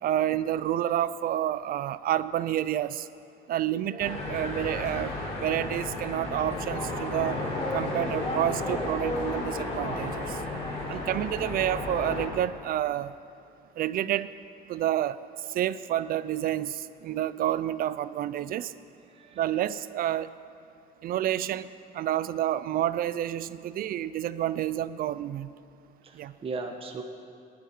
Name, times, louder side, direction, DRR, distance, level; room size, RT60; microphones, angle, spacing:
voice 1, 0.0-3.1 3.5-5.1 5.4-7.4 7.7-10.4 10.9-13.1 13.8-14.3 14.7-15.2 15.5-18.7 19.4-20.3 21.0-21.7 21.9-25.5 26.1-26.3, right 12 dB, 60° right, 15 dB, 0.5 m, -29 dB
sound 1, 4.0-12.3, left 2 dB, 40° left, 4.3 m, -32 dB
voice 2, 26.0-27.0, right 3 dB, 35° right, 2 dB, 1.4 m, -37 dB
19.0 x 11.5 x 4.5 m, 2.5 s
cardioid pair, 110°, 17 cm